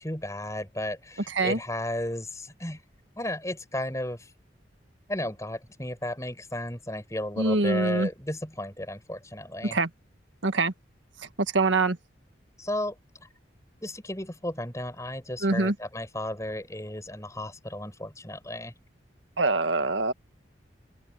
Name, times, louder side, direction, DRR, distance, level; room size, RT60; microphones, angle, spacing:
voice 1, 0.0-2.8 3.2-4.3 5.1-9.8 12.6-13.0 13.2-13.3 13.8-18.7, left 1 dB, 15° left, 6.3 m, -34 dB
voice 2, 7.4-8.1 9.7-9.9 10.4-10.7 11.5-12.0 15.4-15.7 19.4-20.1, right 3 dB, 85° right, 1.8 m, -24 dB
open air
head